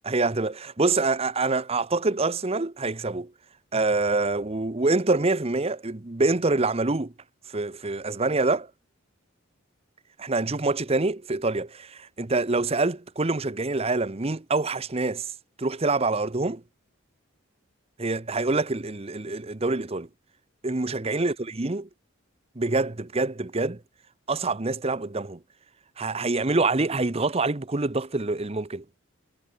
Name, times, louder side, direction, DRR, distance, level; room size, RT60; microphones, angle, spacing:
voice 1, 0.0-3.3 3.7-7.1 7.5-8.7 10.2-15.3 15.6-16.6 18.0-20.1 20.6-21.9 22.6-23.8 24.3-25.4 26.0-28.8, right 3 dB, 30° right, 0.9 m, -26 dB
head